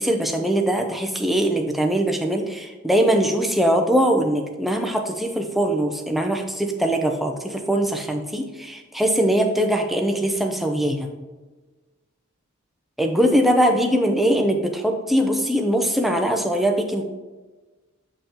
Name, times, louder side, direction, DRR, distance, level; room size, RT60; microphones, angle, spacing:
voice 1, 0.0-11.1 13.0-17.0, right 1 dB, ahead, 3 dB, 0.5 m, -21 dB
6.9 x 5.5 x 2.9 m, 1.3 s
head